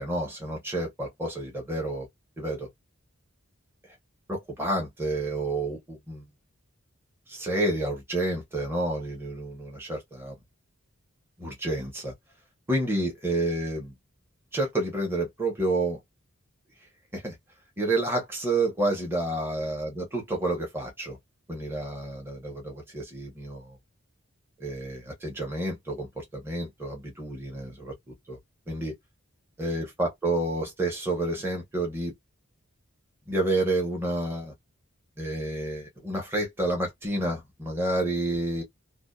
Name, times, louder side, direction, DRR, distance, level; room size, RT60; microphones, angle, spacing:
voice 1, 0.0-2.1 2.4-2.7 4.3-6.2 7.3-10.3 11.4-12.1 12.7-13.9 14.5-16.0 17.1-17.4 17.8-21.2 21.5-23.8 24.6-28.4 28.7-28.9 29.6-32.1 33.3-34.5 35.2-38.6, right 2 dB, 10° right, 0.8 m, -29 dB
2.6 x 2.2 x 2.2 m
head